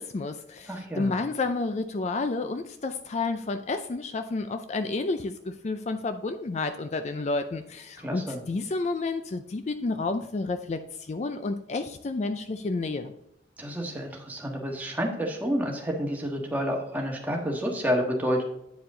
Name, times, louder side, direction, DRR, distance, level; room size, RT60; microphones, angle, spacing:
voice 1, 0.0-13.1, left 3 dB, 40° left, 8 dB, 0.4 m, -30 dB
voice 2, 0.7-1.2 8.0-8.4 13.6-18.4, equal, 10° right, 0 dB, 1.5 m, -29 dB
9.3 x 4.8 x 3.7 m, 0.84 s
head